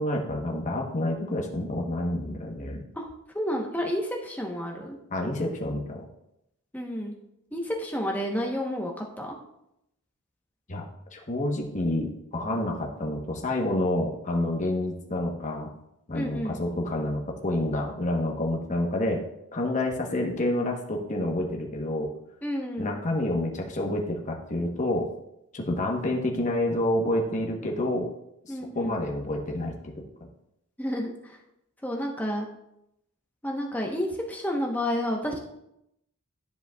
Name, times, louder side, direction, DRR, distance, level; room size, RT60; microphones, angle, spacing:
voice 1, 0.0-2.8 5.1-6.0 10.7-10.8 11.1-15.7 16.1-19.2 19.5-22.1 22.8-25.1 25.5-28.1 28.4-29.9 30.2-30.3, left 1 dB, 35° left, 0 dB, 1.0 m, -28 dB
voice 2, 3.3-5.0 6.7-7.1 7.5-9.3 16.1-16.6 22.4-23.0 28.5-29.0 30.8-31.4 31.8-32.5 33.4-35.4, equal, 5° left, 0 dB, 0.9 m, -30 dB
12.5 x 5.2 x 2.3 m, 0.82 s
head